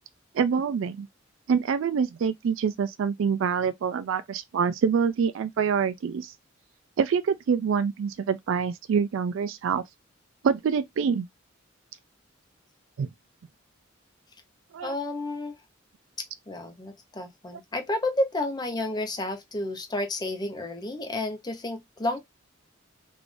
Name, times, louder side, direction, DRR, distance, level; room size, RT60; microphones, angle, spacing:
voice 1, 0.3-1.1 1.5-6.3 7.0-9.8 10.4-11.3 13.0-13.1 14.7-14.9, right 6 dB, 65° right, 0.3 m, -26 dB
voice 2, 14.8-15.6 16.5-22.2, left 2 dB, 20° left, 0.8 m, -31 dB
3.5 x 2.5 x 3.3 m
head